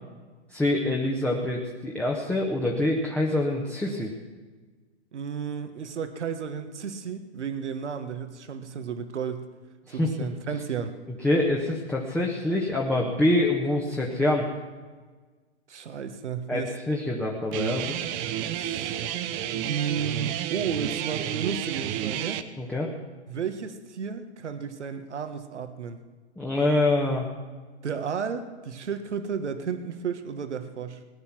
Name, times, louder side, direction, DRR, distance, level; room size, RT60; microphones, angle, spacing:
voice 1, 0.5-4.1 9.9-10.3 11.2-14.4 16.5-18.0 22.6-22.9 26.4-27.3, left 1 dB, 5° left, -2 dB, 1.2 m, -25 dB
voice 2, 5.1-9.5 9.9-10.9 15.7-16.7 18.5-19.0 19.6-22.4 23.3-26.0 27.8-31.0, right 6 dB, 80° right, 9 dB, 1.6 m, -33 dB
Guitar, 17.5-22.4, right 11 dB, 25° right, 0.6 m, -31 dB
18.5 x 9.9 x 6.0 m, 1.4 s
hypercardioid pair, 135°, 34 cm